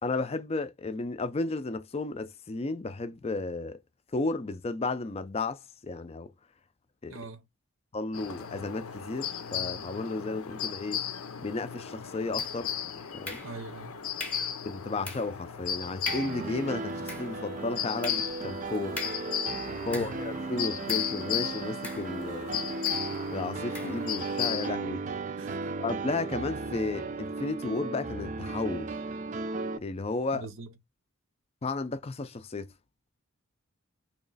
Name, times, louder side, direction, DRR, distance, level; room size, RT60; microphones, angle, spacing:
voice 1, 0.0-3.8 4.1-6.3 7.0-7.2 7.9-11.0 11.4-12.7 13.1-13.4 14.6-19.0 19.3-19.4 19.9-22.7 23.3-25.0 25.8-28.9 29.8-30.5 31.6-32.7, left 3 dB, 30° left, 0.4 m, -33 dB
voice 2, 7.1-7.4 13.4-14.0 19.9-20.2 25.4-25.7 30.3-30.7, right 3 dB, 65° right, 0.7 m, -43 dB
sound 1, 8.1-24.7, left 9 dB, 80° left, 0.6 m, -36 dB
sound 2, 12.4-12.8 13.2-13.8 14.2-14.6 15.0-15.4 15.7-15.8 16.0-16.5 16.9-20.3 20.9-21.2 21.8-22.4 22.8-23.1 23.7-24.0, left 2 dB, 5° left, 0.8 m, -41 dB
Piano, 16.1-29.8, right 3 dB, 35° right, 0.3 m, -36 dB
3.1 x 3.0 x 3.9 m
head